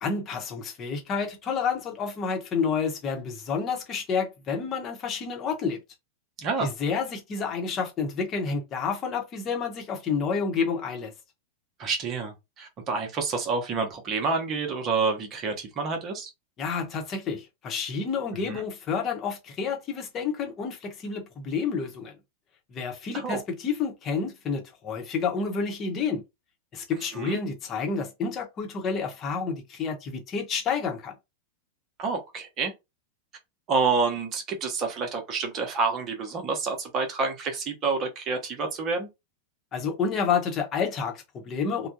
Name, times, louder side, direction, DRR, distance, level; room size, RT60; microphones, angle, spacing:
voice 1, 0.0-5.8 6.6-11.1 16.6-22.1 22.7-26.2 26.7-31.1 39.7-41.9, left 5 dB, 30° left, 1.0 m, -29 dB
voice 2, 6.4-6.7 11.8-16.3 18.5-18.6 23.1-23.4 27.1-27.4 32.0-32.7 33.7-39.1, right 4 dB, 30° right, 0.9 m, -28 dB
3.5 x 2.2 x 2.8 m
figure-of-eight pair, 90°, 0 cm